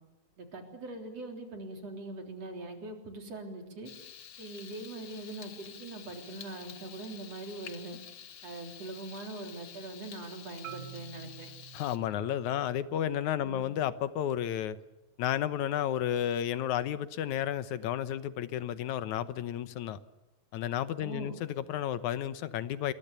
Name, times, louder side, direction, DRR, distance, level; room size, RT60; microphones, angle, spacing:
voice 1, 0.4-3.9 4.4-8.0 8.4-11.5 13.4-13.7 21.0-21.4, right 2 dB, 60° right, 4 dB, 4.7 m, -42 dB
Frying (food), 3.8-12.0, left 8 dB, 50° left, 1.8 m, -49 dB
Marimba xylophone, 10.6-14.8, right 14 dB, 90° right, 0.8 m, -51 dB
voice 2, 11.7-14.8 15.2-20.0 20.5-22.9, left 10 dB, 85° left, 13 dB, 2.4 m, -32 dB
28.0 x 22.5 x 7.0 m, 1.0 s
omnidirectional pair, 3.3 m